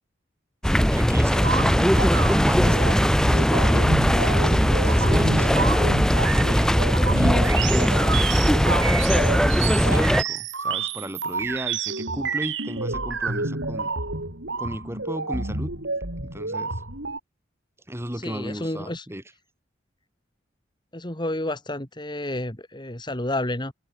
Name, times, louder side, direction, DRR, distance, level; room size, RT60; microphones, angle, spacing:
sound 1, 0.6-10.2, equal, 5° left, 3.1 m, -19 dB
voice 1, 0.9-5.8 6.4-8.8 9.8-13.9 14.6-15.7 16.2-16.8 17.9-19.2, equal, 15° right, 5.7 m, -34 dB
sound 2, 1.3-17.2, right 3 dB, 90° right, 6.7 m, -29 dB
voice 2, 18.2-19.1 20.9-23.7, left 1 dB, 25° left, 3.4 m, -30 dB
head